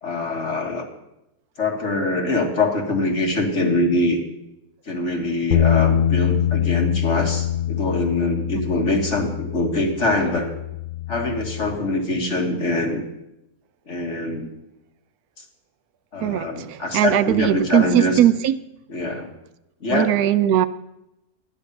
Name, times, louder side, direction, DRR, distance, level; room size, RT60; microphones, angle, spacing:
voice 1, 0.0-0.9 1.6-4.2 4.9-10.5 11.1-13.0 13.9-14.5 16.1-18.2 18.9-19.3 19.8-20.1, left 2 dB, 50° left, 2 dB, 2.0 m, -23 dB
sound 1, 5.5-11.8, left 10 dB, 75° left, 1.4 m, -24 dB
voice 2, 16.2-18.6 19.9-20.7, right 11 dB, 80° right, 13 dB, 1.1 m, -19 dB
13.0 x 10.0 x 5.4 m, 0.87 s
omnidirectional pair, 1.6 m